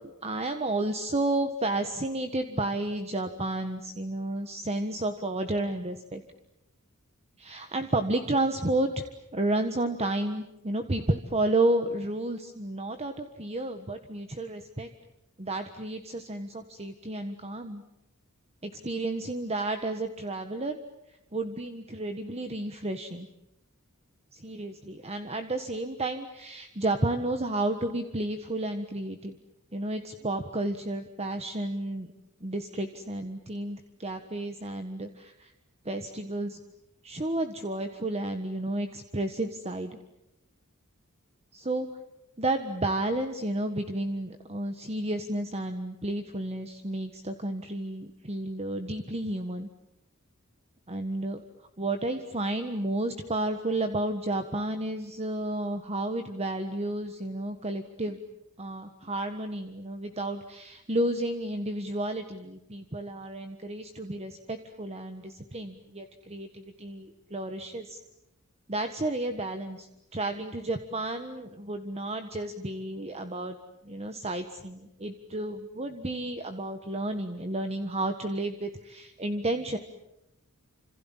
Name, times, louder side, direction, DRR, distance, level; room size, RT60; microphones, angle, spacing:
voice 1, 0.0-6.2 7.4-9.0 9.3-14.9 15.4-17.8 18.6-20.8 21.3-23.3 24.3-29.3 29.7-32.1 32.4-35.5 35.8-36.6 37.0-40.0 41.5-41.9 42.4-49.7 50.9-51.4 51.8-58.2 58.6-68.0 68.7-73.5 73.8-79.8, right 2 dB, 30° right, 7 dB, 1.5 m, -31 dB
29.5 x 27.5 x 7.4 m, 0.87 s
head